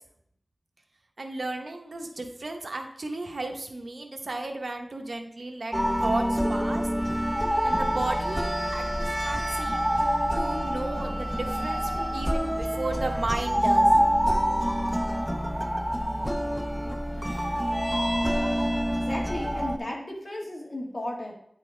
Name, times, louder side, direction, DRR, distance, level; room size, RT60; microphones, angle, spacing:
voice 1, 1.2-6.9 7.6-10.0 10.3-13.9, right 2 dB, 75° right, 4 dB, 0.9 m, -34 dB
sound 1, 5.7-19.8, equal, 5° right, 0.4 m, -26 dB
voice 2, 18.9-21.3, left 1 dB, 55° left, -1 dB, 1.6 m, -34 dB
9.3 x 4.1 x 3.3 m, 0.69 s
wide cardioid pair, 50°, 0 cm